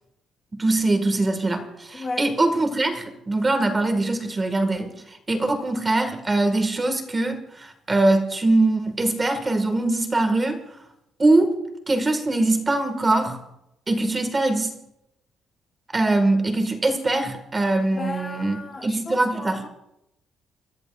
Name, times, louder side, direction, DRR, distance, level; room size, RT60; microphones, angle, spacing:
voice 1, 0.6-10.6 11.2-11.5 11.9-13.4 13.9-14.7 15.9-19.6, right 2 dB, 15° right, 1.9 m, -22 dB
voice 2, 1.9-2.3 17.9-19.7, left 3 dB, 20° left, 1.0 m, -34 dB
29.5 x 14.0 x 2.5 m
cardioid pair, 175°, 0 cm